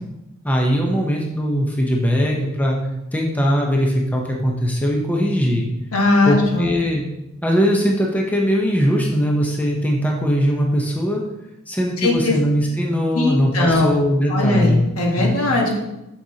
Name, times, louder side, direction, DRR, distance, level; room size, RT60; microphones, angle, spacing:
voice 1, 0.4-2.8 3.1-5.7 6.3-7.0 7.4-11.2 11.7-14.8 15.2-15.4, equal, 5° left, -1 dB, 0.7 m, -20 dB
voice 2, 5.9-6.7 12.0-12.4 13.1-13.9 14.3-15.8, left 2 dB, 80° left, -1 dB, 1.4 m, -19 dB
6.6 x 6.3 x 2.8 m, 0.94 s
head